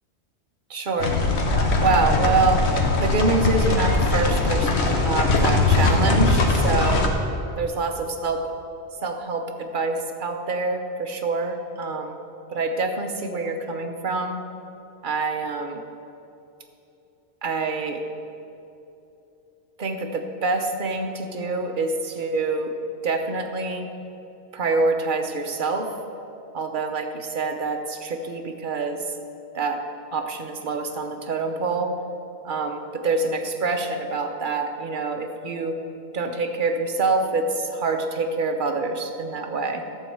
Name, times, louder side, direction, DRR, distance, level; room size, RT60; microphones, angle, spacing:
voice 1, 0.7-1.2 1.8-2.7 3.0-7.1 7.6-8.5 9.0-12.2 12.5-14.4 15.0-15.8 17.4-18.0 19.8-22.7 23.0-23.9 24.5-25.9 26.5-29.0 29.5-29.8 30.1-32.0 32.4-35.7 36.1-39.8, right 3 dB, 50° right, 5 dB, 1.0 m, -26 dB
sound 1, 1.0-7.1, left 3 dB, 80° left, 1.3 m, -21 dB
13.0 x 4.6 x 7.7 m, 2.8 s
omnidirectional pair, 1.1 m